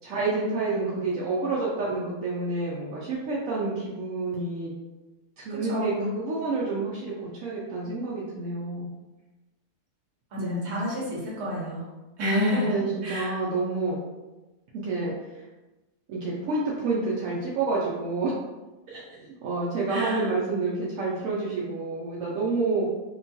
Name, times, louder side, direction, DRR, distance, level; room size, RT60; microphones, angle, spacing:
voice 1, 0.0-4.7 5.4-8.9 10.4-10.8 12.2-14.0 14.8-15.1 16.1-18.3 18.9-22.8, right 3 dB, 75° right, -5 dB, 0.8 m, -29 dB
voice 2, 5.5-6.1 10.3-11.9 12.2-13.3 19.9-20.3, left 1 dB, 50° right, -5 dB, 1.0 m, -30 dB
2.9 x 2.2 x 2.6 m, 1.1 s
omnidirectional pair, 1.9 m